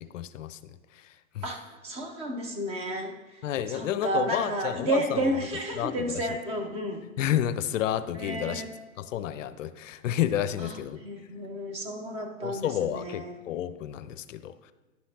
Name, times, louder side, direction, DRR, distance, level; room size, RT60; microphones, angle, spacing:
voice 1, 0.0-1.5 3.4-5.3 5.7-6.4 7.2-8.7 9.0-11.0 12.4-14.7, left 11 dB, 65° left, 13 dB, 0.5 m, -31 dB
voice 2, 1.4-3.1 3.7-7.0 8.1-8.7 10.6-10.7 11.0-13.3, right 1 dB, 15° right, 3 dB, 0.5 m, -31 dB
10.5 x 5.6 x 2.7 m, 1.2 s
hypercardioid pair, 115°, 42 cm